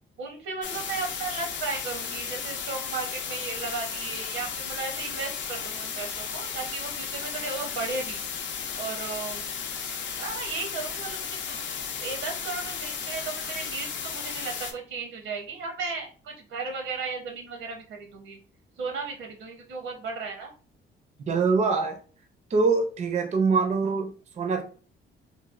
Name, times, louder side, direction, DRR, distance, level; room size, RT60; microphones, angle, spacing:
voice 1, 0.2-8.2 8.7-9.5 10.2-11.2 11.5-11.6 12.0-18.4 18.8-20.5, right 4 dB, 80° right, 3 dB, 0.8 m, -35 dB
sound 1, 0.6-14.7, left 6 dB, 65° left, 0.5 m, -34 dB
voice 2, 21.3-22.0 22.5-24.6, right 4 dB, 35° right, 4 dB, 0.5 m, -24 dB
3.1 x 2.3 x 2.4 m, 0.38 s
cardioid pair, 90°, 20 cm